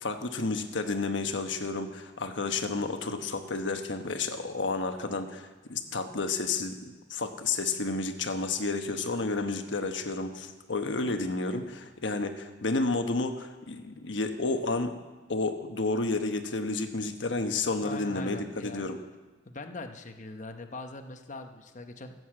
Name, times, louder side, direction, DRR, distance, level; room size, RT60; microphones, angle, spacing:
voice 1, 0.0-15.0 15.3-19.0, left 3 dB, 85° left, 6 dB, 1.2 m, -31 dB
voice 2, 17.8-18.9 19.5-22.1, left 2 dB, 45° left, 6 dB, 0.9 m, -41 dB
14.5 x 7.9 x 7.6 m, 1.3 s
head